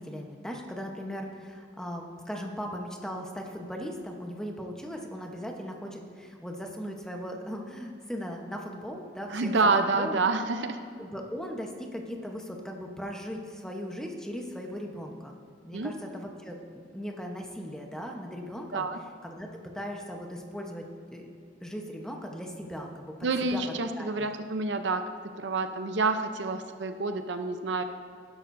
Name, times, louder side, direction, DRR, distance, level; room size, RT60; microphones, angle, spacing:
voice 1, 0.0-9.5 9.8-10.2 11.0-15.3 15.6-18.8 19.2-19.5 19.7-20.8 21.1-21.3 21.6-23.1 23.5-23.6 24.0-24.3, equal, 5° left, 1 dB, 1.0 m, -38 dB
voice 2, 9.3-10.8 15.7-15.9 18.7-19.0 23.2-25.1 25.4-27.8, right 3 dB, 70° right, 7 dB, 0.7 m, -28 dB
19.0 x 11.0 x 2.7 m, 2.2 s
head